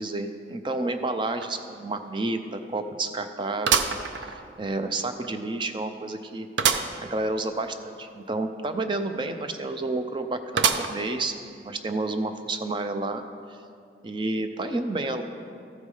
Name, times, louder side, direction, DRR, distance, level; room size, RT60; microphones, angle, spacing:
voice 1, 0.0-6.5 7.0-13.2 14.0-15.2, right 2 dB, 25° right, 8 dB, 0.4 m, -30 dB
sound 1, 1.4-1.5 1.9-2.0 3.6-4.7 5.2-5.3 6.6-7.0 7.4-7.5 7.7-7.8 10.6-11.2 11.8-11.9 12.8-12.9, right 6 dB, 85° right, 0.5 m, -25 dB
14.0 x 4.8 x 5.4 m, 2.4 s
head